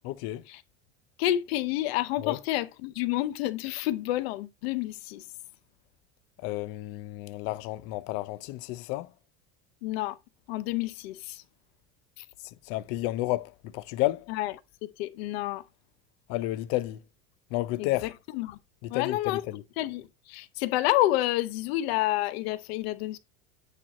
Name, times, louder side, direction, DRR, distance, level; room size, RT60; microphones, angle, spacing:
voice 1, 0.0-0.4 2.2-2.4 6.4-9.1 12.7-14.3 16.3-17.0 17.5-18.1 18.8-19.6, left 17 dB, 45° left, 0.5 m, -31 dB
voice 2, 1.2-5.2 9.8-10.2 10.5-11.4 12.2-12.3 14.3-14.5 14.8-15.6 17.8-18.6 18.9-19.4 19.8-23.2, left 15 dB, 80° left, 0.8 m, -29 dB
9.0 x 4.5 x 4.1 m
cardioid pair, 180°, 31 cm